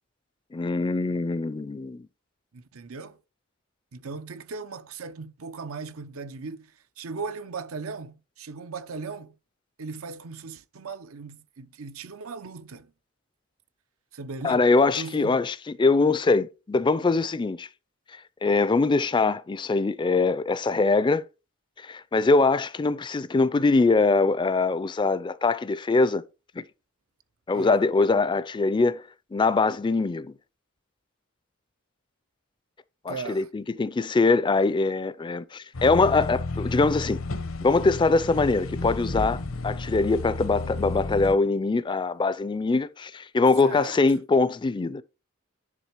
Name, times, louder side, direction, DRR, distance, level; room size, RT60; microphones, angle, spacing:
voice 1, 0.5-2.1 14.4-17.7 18.4-21.2 21.8-26.2 26.6-26.7 27.5-29.0 29.3-30.3 33.0-37.2 37.6-45.0, left 3 dB, 20° left, 0.4 m, -23 dB
voice 2, 2.5-3.2 3.9-6.7 7.0-9.3 9.8-12.9 14.1-14.6 15.0-15.4 27.5-27.7 33.1-33.5 43.6-44.0, right 4 dB, 90° right, 0.7 m, -38 dB
sound 1, 35.7-41.3, left 2 dB, 70° left, 0.8 m, -32 dB
10.0 x 3.6 x 4.5 m
head